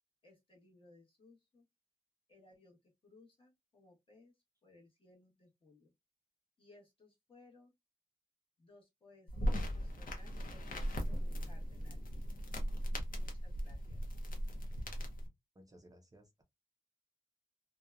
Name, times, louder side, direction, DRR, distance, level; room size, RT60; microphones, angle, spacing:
voice 1, 0.2-1.7 2.3-4.3 4.6-5.9 6.6-7.7 8.6-12.1 13.1-14.0, left 2 dB, 40° left, 1.1 m, -63 dB
sound 1, 9.3-15.3, equal, 75° left, 0.7 m, -38 dB
voice 2, 15.6-16.4, equal, 25° right, 0.4 m, -60 dB
2.8 x 2.1 x 2.3 m
wide cardioid pair, 160°, 14 cm